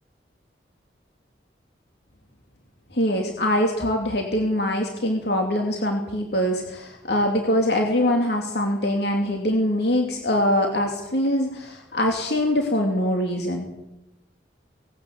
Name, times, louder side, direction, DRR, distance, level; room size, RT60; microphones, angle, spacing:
voice 1, 2.9-13.7, left 1 dB, 65° left, 2 dB, 2.7 m, -23 dB
18.5 x 18.5 x 8.0 m, 0.91 s
head